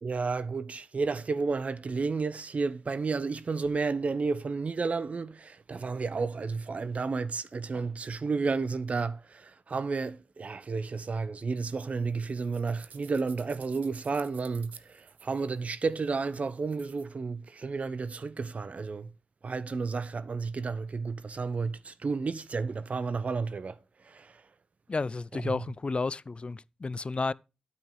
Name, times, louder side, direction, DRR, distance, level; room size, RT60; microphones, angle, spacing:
voice 1, 0.0-19.1 19.4-23.8 24.0-24.4 25.3-25.6, right 4 dB, 55° right, 0.9 m, -32 dB
sound 1, 11.6-17.0, right 7 dB, 85° right, 0.9 m, -55 dB
voice 2, 24.9-27.3, left 3 dB, 40° left, 0.5 m, -32 dB
9.3 x 8.1 x 4.7 m
cardioid pair, 45°, 3 cm